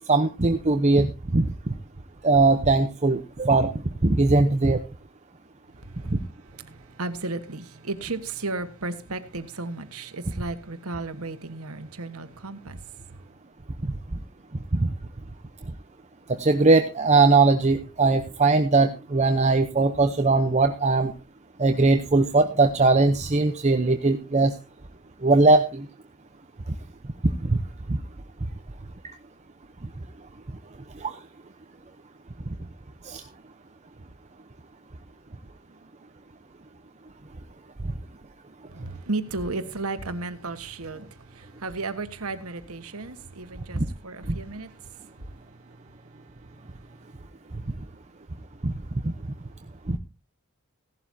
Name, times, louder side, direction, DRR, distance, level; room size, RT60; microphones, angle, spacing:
voice 1, 0.1-1.5 2.2-3.7 4.0-4.8 6.1-6.2 14.7-14.9 16.3-21.1 21.6-24.5 25.2-25.9 27.2-27.6 27.9-28.0 31.0-31.2 33.0-33.2 43.7-43.9 48.6-48.7 49.0-49.1 49.9-50.0, right 3 dB, 30° right, 0.7 m, -20 dB
voice 2, 5.8-13.2 38.7-45.3 46.1-46.2 46.6-46.9, right 3 dB, 85° right, 1.4 m, -34 dB
16.5 x 12.0 x 2.7 m
head